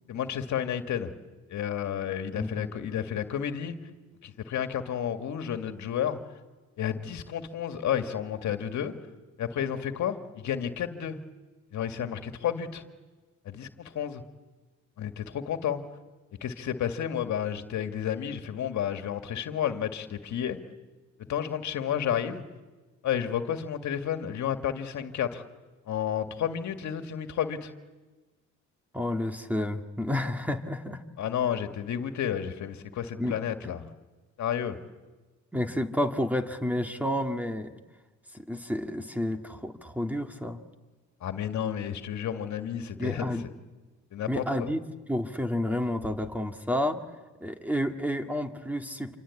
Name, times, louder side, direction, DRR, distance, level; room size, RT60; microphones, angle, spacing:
voice 1, 0.1-1.1 1.5-3.8 4.2-6.2 6.8-8.9 9.4-11.2 11.7-12.8 13.5-14.2 15.0-15.8 16.4-20.6 21.3-22.4 23.0-25.4 25.9-27.7 31.2-33.9 34.4-34.8 41.2-43.3 44.1-44.7, left 9 dB, 70° left, 7 dB, 2.0 m, -31 dB
voice 2, 2.3-2.7 28.9-31.0 33.2-33.4 35.5-37.8 38.3-40.6 43.0-43.4 44.3-44.8 45.1-47.0 47.4-49.2, left 1 dB, 5° right, 5 dB, 2.0 m, -30 dB
28.0 x 25.5 x 8.5 m, 1.3 s
cardioid pair, 90°, 30 cm